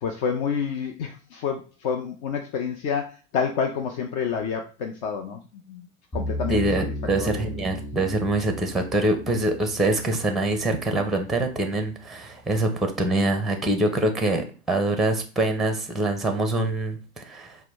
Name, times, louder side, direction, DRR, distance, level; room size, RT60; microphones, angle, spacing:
voice 1, 0.0-5.4 5.7-5.9 6.1-6.6 7.2-7.4, left 6 dB, 45° left, 3 dB, 0.7 m, -28 dB
sound 1, 6.1-11.2, equal, 20° left, 1.6 m, -35 dB
voice 2, 6.5-17.6, right 2 dB, ahead, 6 dB, 0.6 m, -24 dB
4.8 x 2.2 x 3.5 m, 0.34 s
hypercardioid pair, 105°, 41 cm